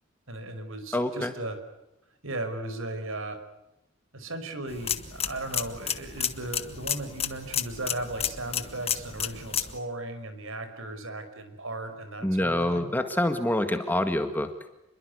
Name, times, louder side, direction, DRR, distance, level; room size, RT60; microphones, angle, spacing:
voice 1, 0.3-1.6 2.2-3.4 4.1-12.9, right 2 dB, 60° right, 9 dB, 5.3 m, -36 dB
voice 2, 0.9-1.3 12.2-14.5, left 1 dB, 10° left, 8 dB, 1.8 m, -26 dB
sound 1, 4.7-9.8, left 8 dB, 25° left, 1.6 m, -32 dB
29.0 x 22.5 x 8.2 m, 0.91 s
head